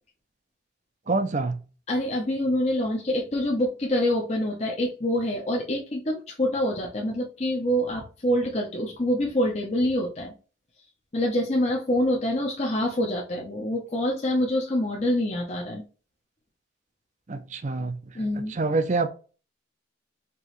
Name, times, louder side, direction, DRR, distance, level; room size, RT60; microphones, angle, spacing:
voice 1, 1.1-1.6 17.3-18.0 18.5-19.1, right 3 dB, 40° right, 10 dB, 0.5 m, -26 dB
voice 2, 1.9-10.3 11.1-15.8 18.1-18.5, left 1 dB, 35° left, -1 dB, 0.7 m, -26 dB
4.5 x 3.0 x 3.1 m, 0.35 s
head